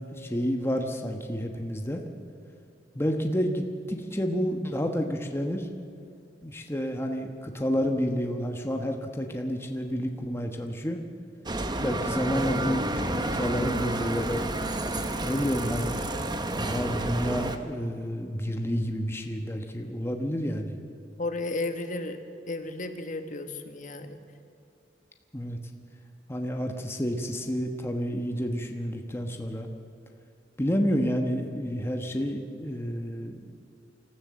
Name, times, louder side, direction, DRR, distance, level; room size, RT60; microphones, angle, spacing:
voice 1, 0.1-2.0 2.9-5.7 6.4-11.0 11.8-14.7 15.2-16.0 16.6-20.8 25.3-25.6 26.3-29.7 30.6-33.4, equal, 15° left, 3 dB, 1.2 m, -30 dB
Bicycle, 11.5-17.6, right 1 dB, 25° right, 1.1 m, -30 dB
voice 2, 21.2-22.2 22.5-24.2, left 2 dB, 45° left, 7 dB, 1.5 m, -33 dB
25.0 x 14.5 x 7.5 m, 2.5 s
head